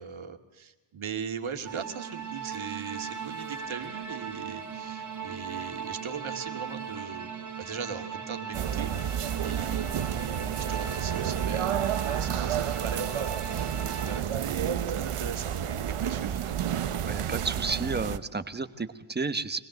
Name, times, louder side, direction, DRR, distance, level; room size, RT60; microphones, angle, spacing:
voice 1, 0.0-7.3 7.6-16.7, right 6 dB, 70° right, 5 dB, 2.4 m, -39 dB
sound 1, 1.6-14.2, right 6 dB, 35° right, 2.6 m, -38 dB
sound 2, 8.5-18.2, right 9 dB, 85° right, 1.2 m, -30 dB
voice 2, 17.1-19.6, right 4 dB, 20° right, 10 dB, 1.2 m, -32 dB
26.0 x 20.0 x 7.8 m, 1.0 s
wide cardioid pair, 170°, 50 cm